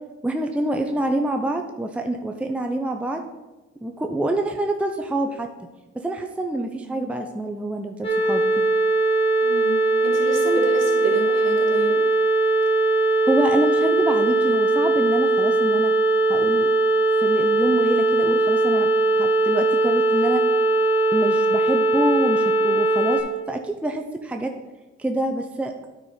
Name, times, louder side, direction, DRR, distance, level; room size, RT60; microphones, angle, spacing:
voice 1, 0.2-3.2 3.8-5.5 5.9-8.5 13.2-15.9 16.3-16.7 17.2-18.9 19.2-20.4 21.1-23.2 23.5-24.5 25.0-25.7, right 1 dB, 5° right, 4 dB, 0.6 m, -26 dB
sound 1, 8.0-23.2, right 2 dB, 20° left, 2.2 m, -20 dB
voice 2, 9.4-12.0, right 2 dB, 60° right, -1 dB, 2.3 m, -29 dB
9.6 x 4.4 x 5.0 m, 1.1 s
cardioid pair, 90°, 30 cm